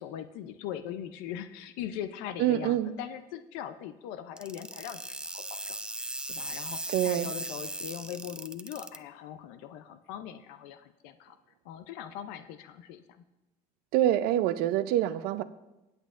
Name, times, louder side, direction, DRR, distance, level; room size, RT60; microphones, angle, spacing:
voice 1, 0.0-5.1 5.3-11.4 11.6-13.2, left 10 dB, 90° left, 10 dB, 0.5 m, -41 dB
voice 2, 2.4-2.9 6.9-7.3 13.9-15.4, right 12 dB, 80° right, 12 dB, 0.5 m, -26 dB
sound 1, 4.4-9.0, right 1 dB, 5° right, 0.4 m, -37 dB
21.0 x 8.0 x 2.5 m, 1.0 s
supercardioid pair, 95°, 16 cm